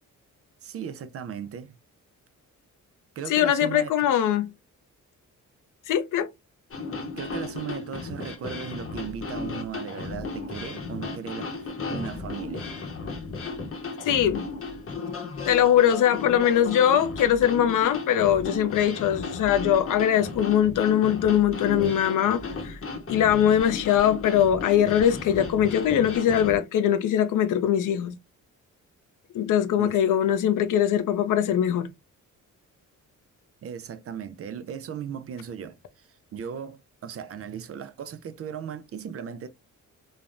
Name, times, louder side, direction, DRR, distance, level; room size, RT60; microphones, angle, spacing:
voice 1, 0.6-1.8 3.2-4.0 7.2-12.7 18.1-18.2 29.8-30.0 33.6-39.5, right 7 dB, 45° right, 0.4 m, -37 dB
voice 2, 3.3-4.5 5.9-6.3 14.0-14.4 15.5-22.8 23.1-28.2 29.3-31.9, left 10 dB, 75° left, 0.5 m, -22 dB
sound 1, 6.7-26.6, left 3 dB, 45° left, 0.8 m, -35 dB
3.1 x 2.1 x 2.4 m
cardioid pair, 130°, 32 cm